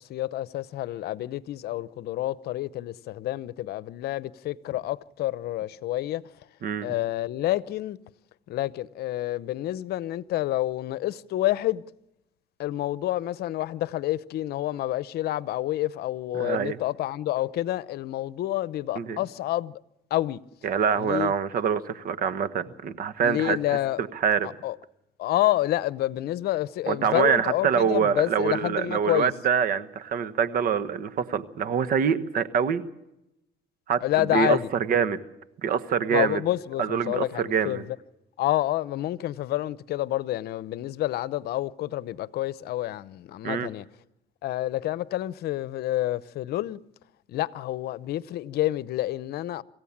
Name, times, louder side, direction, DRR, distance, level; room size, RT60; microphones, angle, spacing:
voice 1, 0.0-6.2 6.8-8.0 8.5-11.9 12.6-19.8 20.1-20.4 21.0-21.3 23.2-24.0 24.6-24.8 25.2-29.3 34.0-34.7 36.1-38.0 38.4-43.9 44.4-46.8 47.3-49.6, left 14 dB, 70° left, 0.8 m, -28 dB
voice 2, 16.3-16.8 19.0-19.2 20.6-23.6 24.0-24.5 26.9-32.8 33.9-35.2 35.6-36.4 36.8-37.8 43.4-43.7, right 7 dB, 55° right, 1.4 m, -25 dB
26.5 x 16.0 x 7.3 m
cardioid pair, 110°, 17 cm